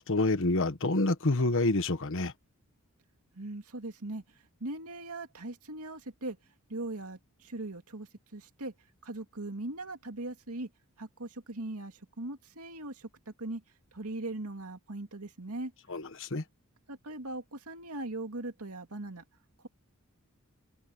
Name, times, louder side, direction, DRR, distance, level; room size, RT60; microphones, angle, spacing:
voice 1, 0.0-2.3 15.9-16.4, left 2 dB, 60° left, 1.3 m, -28 dB
voice 2, 3.3-4.2 4.6-6.4 6.7-8.7 9.0-10.7 11.0-13.6 13.9-15.7 16.9-19.2, right 2 dB, 85° right, 2.4 m, -40 dB
head